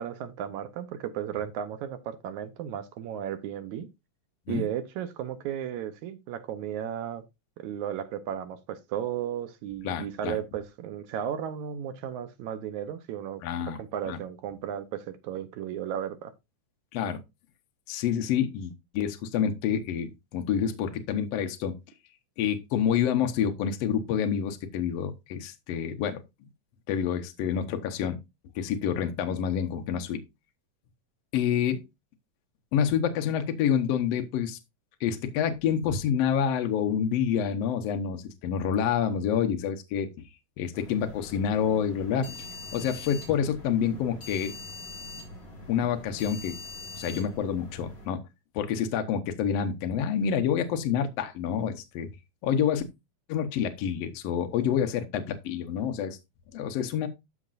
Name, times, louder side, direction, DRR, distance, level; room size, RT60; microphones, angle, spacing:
voice 1, 0.0-3.9 4.5-7.2 7.6-16.3, right 9 dB, 75° right, 2.2 m, -34 dB
voice 2, 9.8-10.4 13.4-13.8 14.1-14.2 16.9-17.2 17.9-21.8 22.4-26.2 26.9-28.2 28.5-30.2 31.3-31.8 32.7-34.6 35.0-40.1 40.6-42.4 42.7-44.5 45.7-46.6 46.9-48.2 48.5-52.1 52.4-52.8 53.3-56.2 56.5-57.1, left 8 dB, 65° left, 1.8 m, -28 dB
sound 1, 40.7-48.1, left 2 dB, 40° left, 5.2 m, -43 dB
13.5 x 5.2 x 2.5 m
omnidirectional pair, 3.5 m